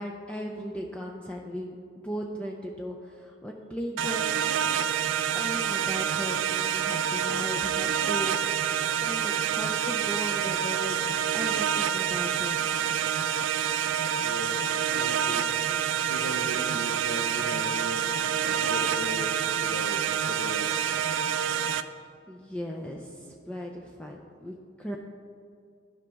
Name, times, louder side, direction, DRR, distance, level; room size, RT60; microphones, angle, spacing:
voice 1, 0.0-4.8 5.3-11.0 11.3-13.0 22.3-25.0, equal, 5° left, 0 dB, 0.4 m, -37 dB
sound 1, 4.0-21.8, right 8 dB, 75° right, 0.3 m, -27 dB
voice 2, 14.2-15.8 16.1-18.1 18.4-21.0, left 1 dB, 65° left, 5 dB, 0.8 m, -38 dB
12.5 x 5.1 x 3.4 m, 2.2 s
head